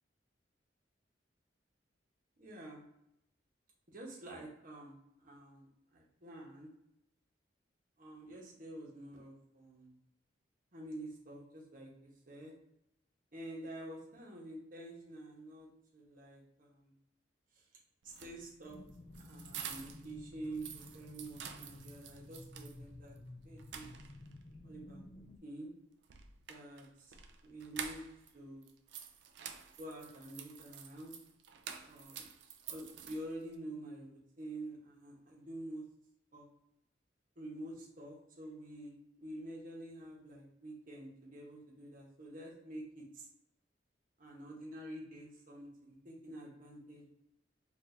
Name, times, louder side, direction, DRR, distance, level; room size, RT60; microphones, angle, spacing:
voice 1, 2.4-2.8 3.9-6.7 8.0-9.9 10.7-12.5 13.3-15.7 15.9-16.9 18.0-18.8 19.2-23.1 23.4-23.9 24.6-25.0 25.4-25.7 26.5-27.1 27.4-28.0 28.3-28.6 29.8-31.2 31.8-32.3 32.7-35.8 36.3-36.5 37.4-38.9 39.2-43.3 44.2-47.1, right 1 dB, 50° right, -2 dB, 1.1 m, -48 dB
sound 1, 18.0-20.1 20.4-22.8 23.2-23.3 23.6-24.4 26.0-28.3 28.6-33.5, right 7 dB, 70° right, 0.4 m, -49 dB
sound 2, 18.6-25.4, left 1 dB, 35° left, 0.4 m, -53 dB
4.5 x 2.6 x 2.6 m, 0.83 s
head